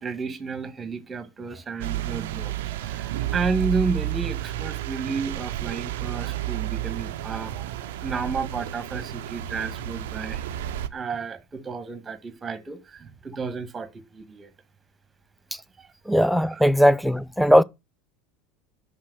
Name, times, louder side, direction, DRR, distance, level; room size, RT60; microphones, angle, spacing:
voice 1, 0.0-10.4 10.9-14.5 15.8-15.9 16.4-16.6, right 4 dB, 25° right, 1.6 m, -32 dB
sound 1, 1.8-10.9, right 13 dB, 75° right, 0.6 m, -31 dB
voice 2, 16.1-17.6, equal, ahead, 0.5 m, -18 dB
5.7 x 5.4 x 6.2 m
hypercardioid pair, 85°, 0 cm